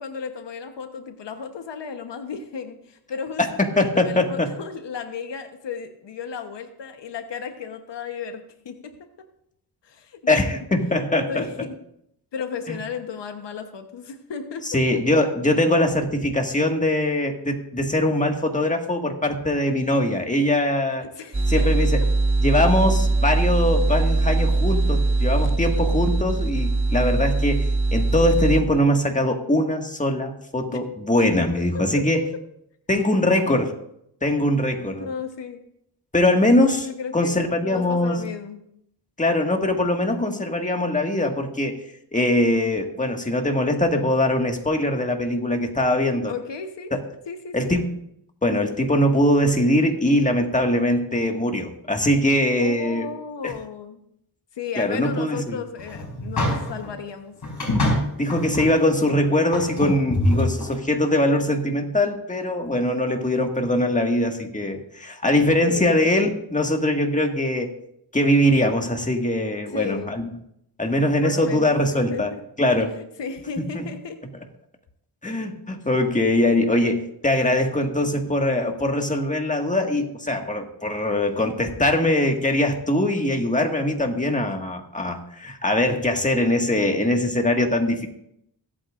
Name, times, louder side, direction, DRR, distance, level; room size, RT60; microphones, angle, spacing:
voice 1, 0.0-8.9 9.8-10.4 11.3-11.7 12.3-14.8 21.0-21.9 30.7-30.8 31.2-31.3 31.7-31.8 35.0-35.6 36.8-38.6 46.3-46.9 47.3-47.7 52.6-54.0 54.5-57.4 65.6-66.1 69.7-70.2 71.2-72.4 72.9-74.2, left 6 dB, 85° left, 7 dB, 1.1 m, -34 dB
voice 2, 3.8-4.5 10.3-11.5 12.7-12.8 14.7-21.0 21.5-22.0 22.4-27.7 27.9-32.3 32.9-33.7 34.2-35.1 36.1-36.9 37.1-38.2 39.2-41.8 42.1-46.3 46.9-47.0 47.5-47.9 48.4-53.1 53.4-53.5 54.8-55.6 58.2-67.7 68.1-70.3 70.8-72.3 72.6-73.0 73.7-73.8 75.2-88.1, left 1 dB, 20° left, 3 dB, 1.8 m, -22 dB
sound 1, 21.3-28.6, right 3 dB, 30° right, 1.2 m, -21 dB
sound 2, 55.8-56.9 57.4-58.7 59.1-59.2 59.5-60.7, left 1 dB, 60° left, 5.2 m, -24 dB
25.0 x 8.6 x 2.5 m, 0.75 s
cardioid pair, 70°, 42 cm